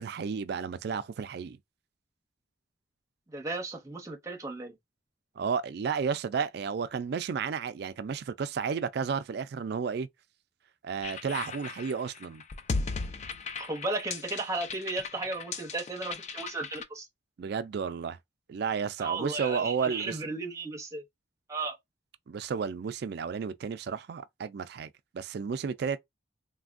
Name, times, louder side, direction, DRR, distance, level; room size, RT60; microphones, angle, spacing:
voice 1, 0.0-1.6 5.4-10.1 10.8-12.4 17.4-18.2 18.5-20.2 22.3-26.0, right 6 dB, 55° right, 0.3 m, -32 dB
voice 2, 3.3-4.8 13.6-17.1 19.0-21.0 21.5-21.8, right 3 dB, 15° right, 0.7 m, -35 dB
sound 1, 11.0-16.8, left 4 dB, 35° left, 0.3 m, -37 dB
3.3 x 2.2 x 2.4 m
head